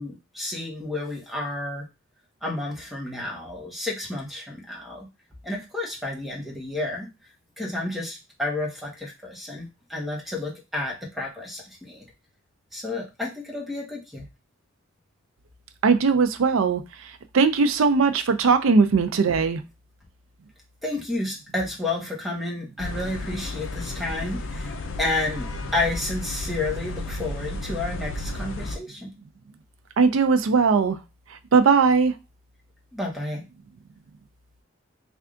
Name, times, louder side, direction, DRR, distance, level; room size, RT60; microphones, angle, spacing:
voice 1, 0.0-1.9 2.4-5.1 5.4-7.1 7.6-12.0 12.7-14.2 20.8-24.7 25.0-29.1 32.9-33.4, left 2 dB, ahead, 1.0 m, -31 dB
voice 2, 15.8-16.8 17.3-19.6 30.0-31.0 31.5-32.1, right 5 dB, 85° right, 0.4 m, -19 dB
sound 1, 22.8-28.8, left 2 dB, 75° left, 0.5 m, -33 dB
3.4 x 2.3 x 3.7 m
head